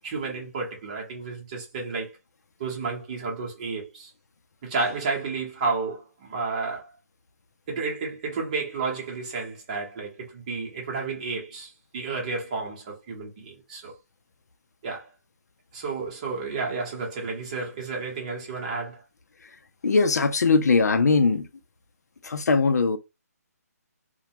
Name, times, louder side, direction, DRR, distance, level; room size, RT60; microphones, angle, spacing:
voice 1, 0.0-2.1 2.6-4.1 4.6-6.9 7.7-13.9 14.8-15.1 15.7-19.0, right 4 dB, 25° right, 0.9 m, -31 dB
voice 2, 19.8-21.5 22.2-23.0, left 4 dB, 75° left, 0.5 m, -20 dB
2.2 x 2.1 x 2.7 m
hypercardioid pair, 165°, 9 cm